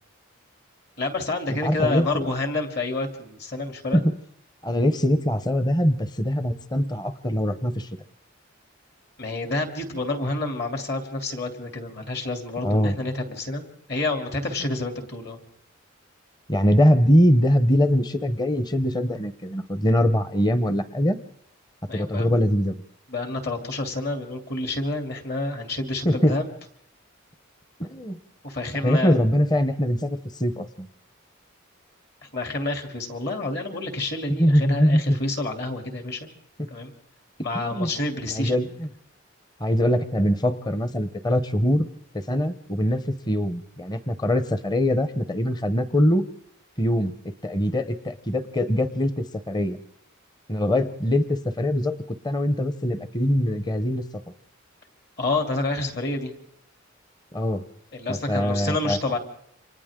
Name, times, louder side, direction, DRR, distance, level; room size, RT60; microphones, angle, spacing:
voice 1, 1.0-4.0 9.2-15.4 21.9-22.3 23.1-26.5 28.4-29.2 32.3-36.3 36.7-36.9 37.4-38.7 55.2-56.3 57.9-59.2, left 2 dB, 55° left, 4 dB, 3.0 m, -29 dB
voice 2, 1.6-2.3 3.9-4.2 4.6-7.9 12.6-13.0 16.5-21.2 21.9-22.7 26.0-26.4 27.8-28.2 28.8-30.9 34.4-35.2 36.6-36.7 37.7-37.9 38.3-38.9 39.6-41.9 42.1-46.3 46.8-49.8 50.5-52.0 52.2-54.0 57.3-57.6 58.1-59.0, equal, 20° left, 11 dB, 0.8 m, -22 dB
29.0 x 25.5 x 3.7 m, 0.72 s
head